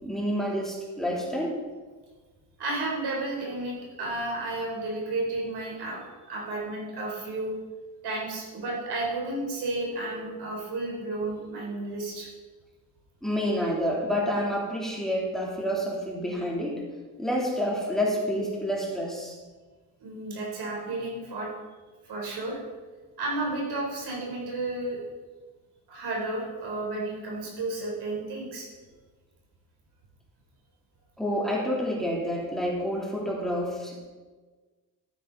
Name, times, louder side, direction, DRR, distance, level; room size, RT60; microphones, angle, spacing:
voice 1, 0.0-1.5 13.2-16.8 17.2-19.4 31.2-34.0, equal, ahead, -4 dB, 3.3 m, -28 dB
voice 2, 2.6-6.0 6.3-7.5 8.0-12.3 20.0-21.5 22.0-22.6 23.2-25.0 25.9-28.7, right 2 dB, 70° right, -2 dB, 4.2 m, -32 dB
13.0 x 9.2 x 4.1 m, 1.4 s
supercardioid pair, 75°, 41 cm